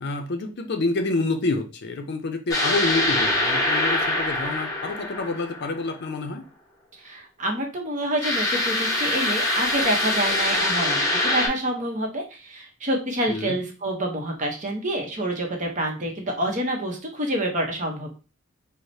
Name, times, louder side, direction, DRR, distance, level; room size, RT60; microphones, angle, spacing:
voice 1, 0.0-6.4 13.3-13.6, left 3 dB, 55° left, 5 dB, 0.5 m, -28 dB
sound 1, 2.5-5.9 8.2-11.5, left 1 dB, 15° left, 0.9 m, -24 dB
voice 2, 7.0-18.1, right 1 dB, 35° right, 1 dB, 0.8 m, -27 dB
4.7 x 2.1 x 2.7 m, 0.33 s
head